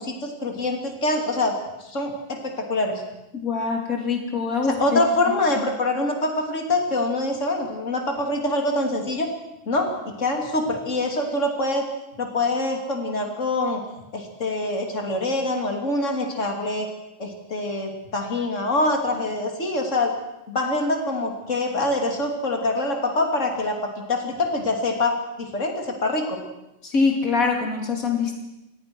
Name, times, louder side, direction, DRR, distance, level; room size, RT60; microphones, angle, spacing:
voice 1, 0.0-1.5 1.8-3.0 4.7-9.3 9.7-11.9 12.2-13.8 14.1-16.9 17.2-20.1 20.5-26.4, left 2 dB, 60° left, 3 dB, 3.4 m, -25 dB
voice 2, 3.4-5.0 26.8-28.4, left 4 dB, 85° left, 2 dB, 3.3 m, -24 dB
26.5 x 20.0 x 6.2 m, 0.94 s
omnidirectional pair, 1.4 m